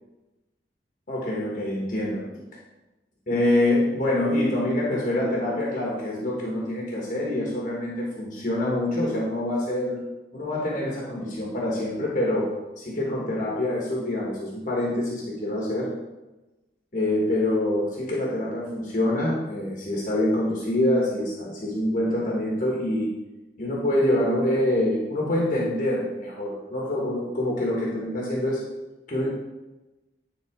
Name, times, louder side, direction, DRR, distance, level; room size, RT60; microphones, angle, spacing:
voice 1, 1.1-2.2 3.3-10.0 10.3-12.5 12.8-15.9 16.9-23.1 23.6-28.6 29.1-29.3, left 1 dB, 45° left, -4 dB, 1.4 m, -25 dB
9.9 x 4.0 x 3.6 m, 1.1 s
head